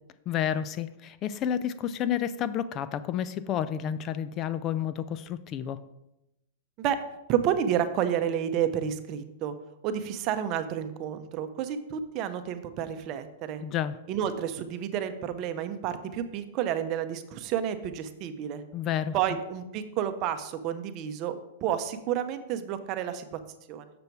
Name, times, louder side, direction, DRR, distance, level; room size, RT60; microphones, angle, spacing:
voice 1, 0.3-5.8 13.6-14.0 18.7-19.2, left 9 dB, 35° left, 14 dB, 0.4 m, -30 dB
voice 2, 7.3-9.5 9.8-13.6 14.1-18.6 19.1-23.4 23.7-23.9, right 9 dB, 40° right, 10 dB, 0.8 m, -30 dB
6.9 x 6.6 x 4.6 m, 0.90 s
hypercardioid pair, 130°, 0 cm